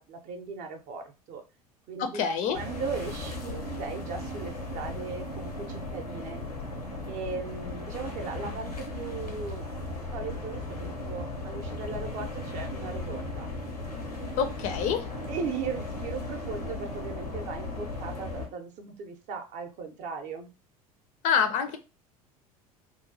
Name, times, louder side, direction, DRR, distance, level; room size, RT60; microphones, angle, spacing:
voice 1, 0.0-1.4 1.9-2.3 2.5-6.4 7.1-9.7 10.1-13.5 15.3-20.5, right 4 dB, 40° right, 5 dB, 0.6 m, -38 dB
voice 2, 2.0-2.6 14.4-15.0 21.2-21.8, left 7 dB, 40° left, 8 dB, 0.4 m, -26 dB
sound 1, 2.5-18.5, left 2 dB, 85° left, 0.7 m, -36 dB
3.0 x 2.3 x 2.5 m, 0.30 s
figure-of-eight pair, 70°, 19 cm